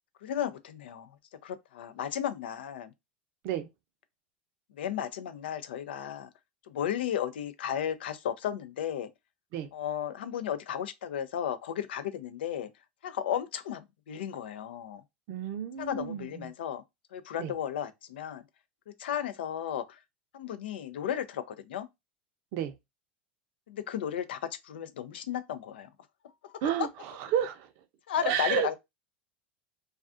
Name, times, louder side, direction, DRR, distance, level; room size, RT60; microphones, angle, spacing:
voice 1, 0.2-1.1 1.4-2.9 4.7-6.3 6.7-9.1 9.7-12.7 13.0-15.0 15.8-16.8 17.1-18.4 19.0-20.0 20.3-21.9 23.7-25.9 26.4-26.5 26.8-26.9 28.1-28.8, left 9 dB, 80° left, 0.4 m, -34 dB
voice 2, 15.3-16.4 17.4-17.5 22.5-22.7 26.6-26.9 27.3-27.6 28.2-28.8, right 10 dB, 60° right, 0.6 m, -30 dB
2.3 x 2.3 x 2.4 m
hypercardioid pair, 95°, 6 cm